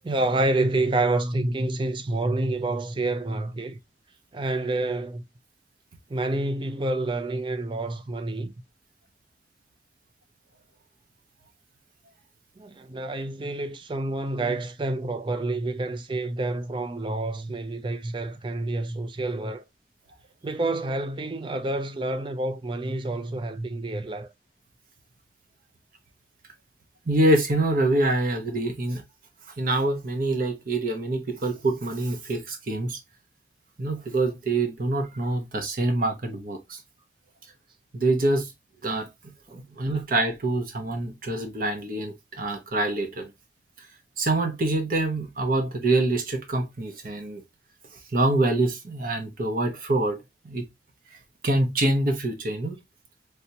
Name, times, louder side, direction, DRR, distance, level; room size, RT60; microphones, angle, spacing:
voice 1, 0.0-3.8 4.3-5.2 6.1-8.5 12.6-19.6 20.4-24.3 39.5-39.6 39.9-40.0, right 2 dB, 30° right, 0.4 m, -28 dB
voice 2, 27.1-29.0 29.6-33.0 33.8-36.8 37.9-38.5 38.8-39.1 39.5-43.3 44.2-47.4 48.1-50.2 50.4-50.6 51.4-52.8, right 2 dB, 55° right, 0.7 m, -25 dB
3.3 x 2.8 x 2.8 m
head